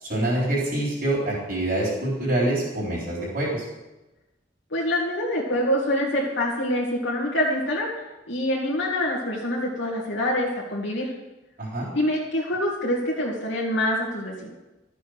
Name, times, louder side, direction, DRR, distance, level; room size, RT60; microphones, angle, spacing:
voice 1, 0.0-3.6 11.6-11.9, right 1 dB, 45° right, -6 dB, 4.0 m, -25 dB
voice 2, 4.7-7.9 8.3-11.1 11.9-14.5, left 1 dB, 75° left, -4 dB, 2.1 m, -25 dB
13.0 x 6.9 x 6.4 m, 1.0 s
head